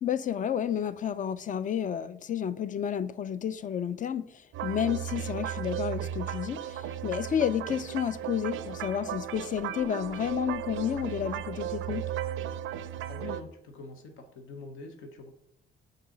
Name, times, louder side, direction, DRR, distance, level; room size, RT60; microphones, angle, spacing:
voice 1, 0.0-4.3 4.6-12.0, left 9 dB, 40° left, 0.4 m, -31 dB
sound 1, 4.5-13.4, right 11 dB, 75° right, 0.4 m, -35 dB
voice 2, 13.1-15.3, left 3 dB, 90° left, 1.0 m, -44 dB
6.6 x 4.1 x 3.8 m
cardioid pair, 90°, 20 cm